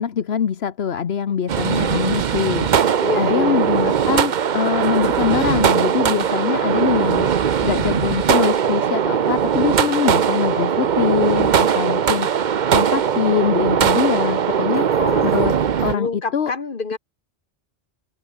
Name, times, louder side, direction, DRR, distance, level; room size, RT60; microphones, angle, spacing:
voice 1, 0.0-2.7 3.1-15.5 15.8-16.5, left 7 dB, 75° left, 1.3 m, -23 dB
sound 1, 1.5-15.9, right 8 dB, 50° right, 0.8 m, -19 dB
voice 2, 3.0-3.7 14.9-15.4 15.9-17.0, left 4 dB, 55° left, 1.6 m, -27 dB
omnidirectional pair, 1.1 m